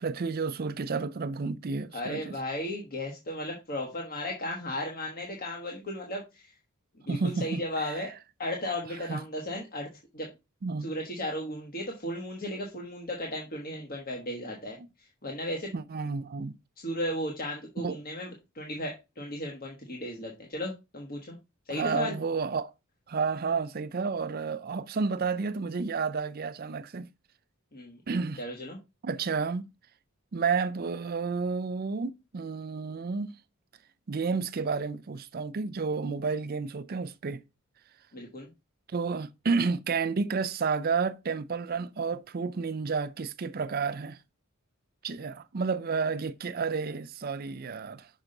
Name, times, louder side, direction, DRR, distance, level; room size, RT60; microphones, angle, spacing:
voice 1, 0.0-2.4 7.1-8.1 9.1-9.2 10.6-10.9 14.8-14.9 15.7-16.5 17.8-18.0 21.7-22.7 23.1-27.1 28.1-28.4 29.0-29.7 30.3-33.3 34.1-37.4 38.9-44.2 45.0-48.1, right 4 dB, 45° right, 0.5 m, -31 dB
voice 2, 1.9-6.5 7.1-8.1 8.4-9.9 10.1-10.3 10.8-14.8 15.2-15.7 16.8-18.3 18.5-21.4 21.7-22.2 27.7-28.0 28.4-28.8 38.1-38.5, left 1 dB, 40° left, 1.3 m, -35 dB
5.9 x 5.5 x 3.8 m
head